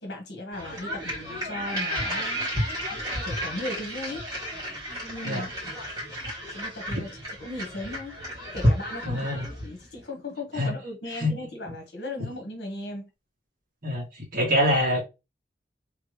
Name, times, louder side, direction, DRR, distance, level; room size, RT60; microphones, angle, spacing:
voice 1, 0.0-2.5 3.2-4.2 5.1-5.5 6.5-8.2 8.5-13.1, left 1 dB, 75° left, 1.3 m, -37 dB
sound 1, 0.5-9.8, equal, 20° right, 2.4 m, -31 dB
voice 2, 9.0-9.5 10.6-10.7 11.2-11.3 13.8-14.0 14.3-15.0, equal, 50° right, 1.9 m, -24 dB
3.5 x 3.4 x 3.1 m
head